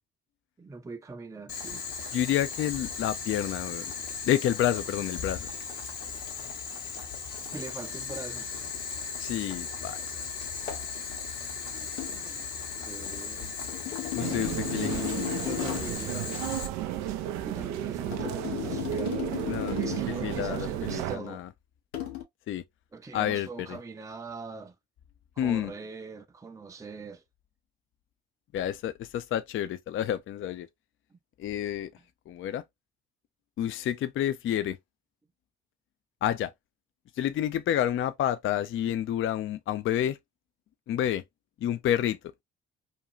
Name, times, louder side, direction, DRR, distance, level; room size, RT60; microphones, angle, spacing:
voice 1, 0.6-1.8 7.5-8.5 11.8-12.5 12.8-13.5 13.8-13.9 14.7-16.5 17.4-21.4 22.9-24.7 25.4-27.2 31.1-31.2, right 3 dB, 10° right, 0.5 m, -42 dB
Boiling, 1.5-16.7, left 5 dB, 70° left, 1.0 m, -37 dB
voice 2, 2.1-3.9 4.2-5.5 9.2-10.0 14.1-15.0 19.5-19.8 20.1-21.5 22.5-22.6 23.1-23.8 25.4-25.7 28.5-30.7 31.4-31.9 32.3-32.6 33.6-34.8 36.2-36.5 37.2-40.2 40.9-41.2 41.6-42.2, left 11 dB, 45° left, 0.4 m, -29 dB
sound 1, 10.7-10.9 12.0-12.2 13.7-16.0 18.1-20.2 21.9-22.2, left 13 dB, 85° left, 0.7 m, -35 dB
sound 2, 14.2-21.2, right 13 dB, 70° right, 0.4 m, -33 dB
2.6 x 2.3 x 2.7 m
hypercardioid pair, 55°, 30 cm